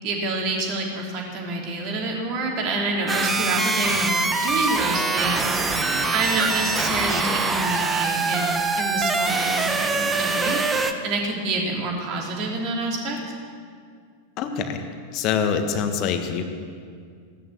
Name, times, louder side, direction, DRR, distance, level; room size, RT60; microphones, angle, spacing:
voice 1, 0.0-13.2, right 2 dB, 40° right, 0 dB, 3.3 m, -27 dB
sound 1, 3.1-10.9, right 3 dB, 15° right, 1.2 m, -24 dB
voice 2, 14.4-14.8 15.1-16.4, left 7 dB, 40° left, 7 dB, 1.7 m, -24 dB
17.0 x 11.0 x 7.5 m, 2.2 s
figure-of-eight pair, 90°, 0 cm